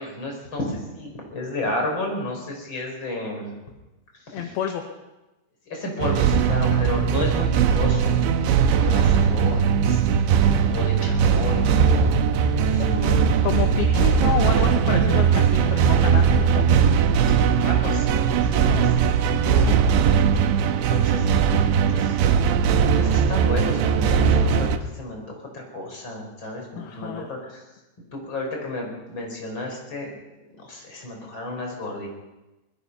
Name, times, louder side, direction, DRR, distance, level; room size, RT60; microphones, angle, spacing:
voice 1, 0.0-3.5 4.1-4.4 5.7-10.3 10.6-13.3 17.3-18.8 19.2-19.7 20.6-21.5 21.9-22.3 23.0-25.2 25.5-27.8 28.1-30.1 30.6-32.1, left 2 dB, 25° left, 1 dB, 5.8 m, -33 dB
voice 2, 4.3-4.9 6.5-6.9 11.9-12.3 12.8-16.7 18.5-19.0 19.4-19.8 26.8-27.3, left 8 dB, 70° left, 4 dB, 3.1 m, -30 dB
sound 1, 6.0-24.8, right 7 dB, 85° right, 3.4 m, -19 dB
23.5 x 21.0 x 5.7 m, 1.0 s
omnidirectional pair, 5.0 m